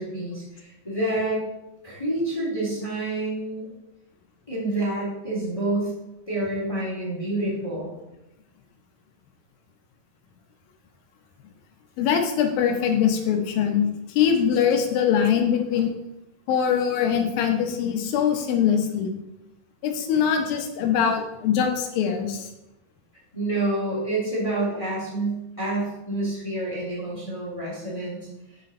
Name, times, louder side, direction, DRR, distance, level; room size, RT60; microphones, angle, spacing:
voice 1, 0.0-1.4 1.8-3.7 4.5-5.9 6.3-7.9 23.3-28.2, right 2 dB, 10° left, -7 dB, 2.7 m, -28 dB
voice 2, 12.0-15.9 16.5-19.2 19.8-22.5, left 8 dB, 75° left, 5 dB, 2.7 m, -22 dB
7.6 x 6.8 x 4.3 m, 0.92 s
omnidirectional pair, 4.2 m